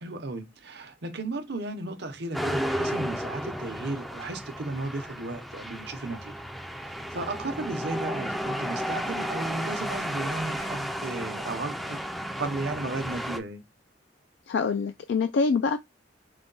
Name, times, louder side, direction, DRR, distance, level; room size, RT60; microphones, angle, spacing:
voice 1, 0.0-6.3 6.8-12.0 12.4-13.6, right 2 dB, 65° right, 0.8 m, -34 dB
sound 1, 2.3-13.4, equal, ahead, 0.4 m, -33 dB
voice 2, 14.5-15.8, left 4 dB, 70° left, 0.3 m, -25 dB
4.9 x 2.2 x 3.9 m
head